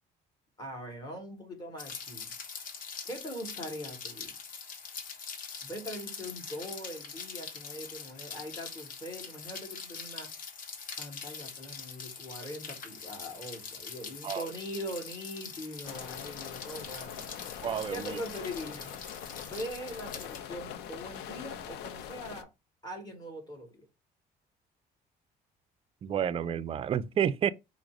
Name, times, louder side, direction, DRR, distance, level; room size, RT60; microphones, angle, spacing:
voice 1, 0.6-2.3 3.1-4.3 5.6-10.3 11.0-17.3 17.9-18.9 19.4-22.5 22.8-23.9, equal, 25° left, 1.7 m, -42 dB
Rain, 1.8-20.4, left 5 dB, 55° left, 1.0 m, -43 dB
sound 1, 15.8-22.4, left 9 dB, 85° left, 0.5 m, -43 dB
voice 2, 17.6-18.2 26.0-27.5, right 9 dB, 35° right, 0.3 m, -30 dB
4.9 x 2.0 x 4.6 m
cardioid pair, 110°, 17 cm